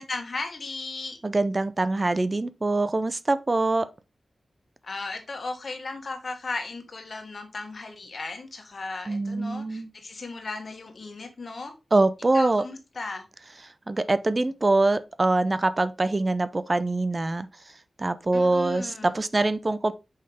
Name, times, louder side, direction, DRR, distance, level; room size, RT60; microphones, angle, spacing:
voice 1, 0.0-1.2 4.8-11.7 12.3-13.3 18.3-19.2, left 3 dB, 60° left, 1.5 m, -36 dB
voice 2, 1.2-3.9 9.1-9.9 11.9-12.6 13.9-17.5 18.0-19.9, right 2 dB, 35° right, 0.5 m, -24 dB
5.5 x 5.2 x 3.4 m
cardioid pair, 60°, 0 cm